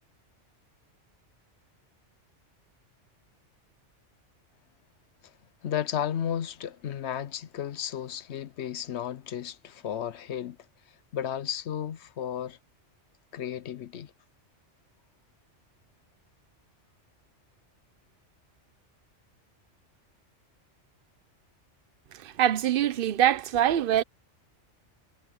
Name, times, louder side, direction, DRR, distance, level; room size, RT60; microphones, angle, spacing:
voice 1, 5.6-10.6 11.1-12.6 13.3-14.1, left 9 dB, 70° left, 1.0 m, -33 dB
voice 2, 22.4-24.0, right 11 dB, 55° right, 0.8 m, -23 dB
omnidirectional pair, 1.2 m